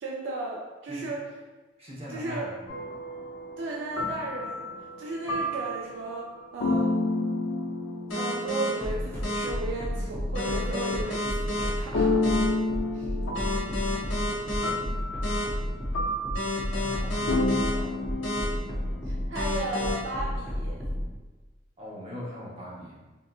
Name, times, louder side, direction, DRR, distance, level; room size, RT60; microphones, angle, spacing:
voice 1, 0.0-1.2 2.1-2.5 3.6-4.7 5.0-6.3 6.5-6.9 8.1-12.2 12.9-13.1 19.0-20.8, right 2 dB, 65° right, -2 dB, 0.4 m, -35 dB
voice 2, 1.8-2.6 14.3-14.7 16.7-18.0 21.8-23.0, equal, 30° right, -6 dB, 0.8 m, -40 dB
sound 1, 2.7-9.7 11.9-19.6, left 2 dB, 85° left, 0.5 m, -31 dB
sound 2, 8.1-8.7 9.2-9.4 10.3-11.7 12.2-12.4 13.3-14.7 15.2-15.4 16.3-17.7 18.2-18.4 19.3-19.9, left 1 dB, 65° left, 1.0 m, -30 dB
sound 3, 8.8-21.0, equal, 10° left, 0.5 m, -31 dB
3.7 x 2.7 x 2.3 m, 1.2 s
head